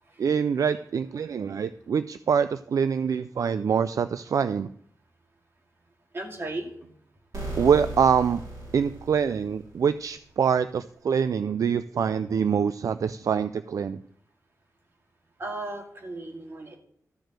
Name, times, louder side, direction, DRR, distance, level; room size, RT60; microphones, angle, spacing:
voice 1, 0.2-4.7 7.6-8.4 8.7-14.0, right 7 dB, 65° right, 13 dB, 0.4 m, -25 dB
voice 2, 6.1-6.7 15.4-16.8, right 2 dB, 40° right, 2 dB, 2.3 m, -35 dB
sound 1, 7.3-10.0, right 2 dB, 90° right, 4.9 m, -37 dB
13.5 x 5.1 x 7.5 m, 0.66 s
wide cardioid pair, 155°, 6 cm